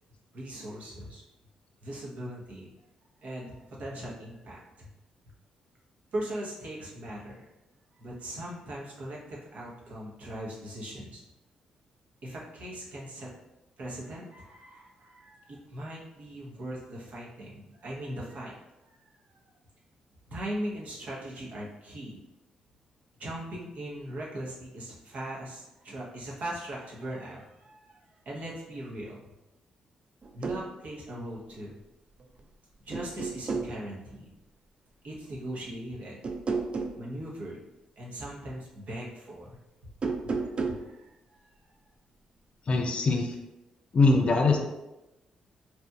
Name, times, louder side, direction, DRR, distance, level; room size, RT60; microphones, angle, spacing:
voice 1, 0.3-1.2 1.8-2.7 3.2-4.9 6.1-7.5 8.0-11.2 12.2-13.3 13.8-18.6 20.3-22.2 23.2-28.0 28.3-29.2 30.3-31.7 32.9-34.3 35.0-36.2 37.0-37.6 38.0-39.6 40.2-41.1 41.4-41.5, right 1 dB, 65° right, -4 dB, 0.8 m, -39 dB
sound 1, 30.2-30.6 32.2-32.5 32.9-33.8 36.2-37.0 39.9-40.9, right 4 dB, 45° right, 0.3 m, -31 dB
voice 2, 42.7-43.3 43.9-44.6, left 3 dB, 45° left, 2 dB, 0.4 m, -22 dB
2.8 x 2.5 x 2.2 m, 0.97 s
supercardioid pair, 50°, 3 cm